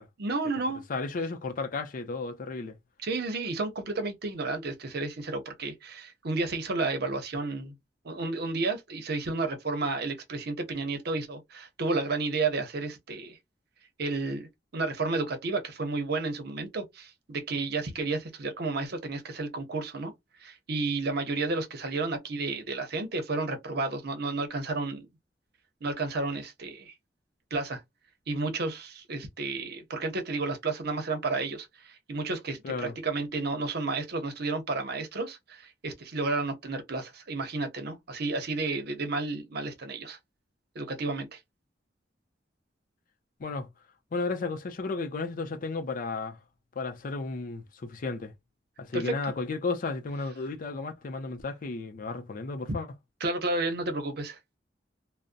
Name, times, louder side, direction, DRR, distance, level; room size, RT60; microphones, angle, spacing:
voice 1, 0.2-0.8 3.0-7.8 8.0-13.4 14.0-20.1 20.4-25.1 25.8-26.9 27.5-27.8 28.3-40.2 40.7-41.4 48.9-49.1 53.2-54.4, right 3 dB, 60° right, 0.8 m, -32 dB
voice 2, 0.9-2.8 32.6-32.9 43.4-43.7 44.1-46.4 46.8-48.3 48.8-52.9, left 3 dB, 50° left, 0.5 m, -33 dB
2.5 x 2.1 x 2.5 m
head